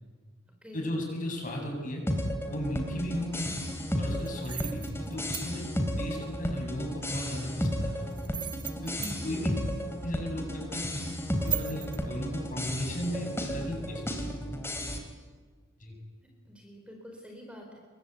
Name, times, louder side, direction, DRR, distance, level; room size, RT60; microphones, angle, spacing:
voice 1, 0.7-2.0 2.5-3.6 4.0-5.7 6.0-8.2 8.8-9.5 10.0-11.1 11.4-14.4 15.8-16.0, left 1 dB, 45° left, 1 dB, 7.9 m, -35 dB
sound 1, 2.1-15.0, equal, 15° left, 3.5 m, -33 dB
sound 2, 4.2-5.5 8.1-9.2 11.4-12.0, right 10 dB, 25° right, 0.8 m, -36 dB
voice 2, 9.0-9.6 16.4-17.8, equal, 5° right, 1 dB, 4.3 m, -48 dB
27.5 x 23.5 x 8.4 m, 1.5 s
head